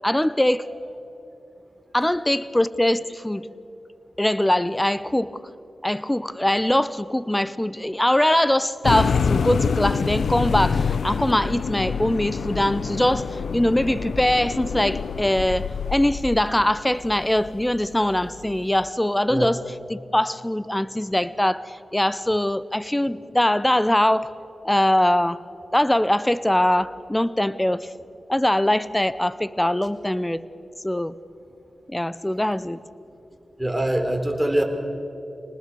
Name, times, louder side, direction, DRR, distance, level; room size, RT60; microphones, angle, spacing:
voice 1, 0.0-0.7 1.9-3.5 4.2-5.4 5.8-19.6 19.9-24.3 24.6-25.4 25.7-27.9 28.3-30.4 30.8-31.1 31.9-32.8, left 1 dB, 10° left, 0.8 m, -22 dB
sound 1, 8.8-18.9, left 5 dB, 85° left, 0.7 m, -26 dB
voice 2, 33.6-34.6, right 1 dB, 10° right, 3.7 m, -23 dB
26.5 x 19.5 x 6.9 m
cardioid pair, 50°, 0 cm